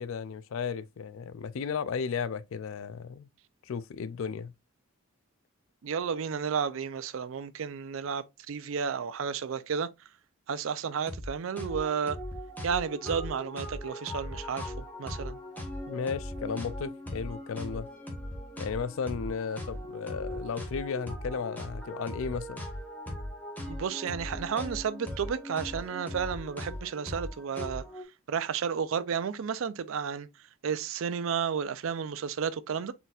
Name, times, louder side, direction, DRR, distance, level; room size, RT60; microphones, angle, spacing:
voice 1, 0.0-3.3 3.7-4.5 15.9-17.9 18.6-22.6, left 6 dB, 65° left, 0.4 m, -34 dB
voice 2, 5.8-9.9 10.5-12.2 12.6-15.4 23.7-27.8 28.3-30.3 30.6-32.9, right 6 dB, 65° right, 0.4 m, -32 dB
sound 1, 11.1-11.3 11.6-28.0, left 1 dB, 10° left, 1.0 m, -39 dB
4.1 x 4.0 x 2.4 m
head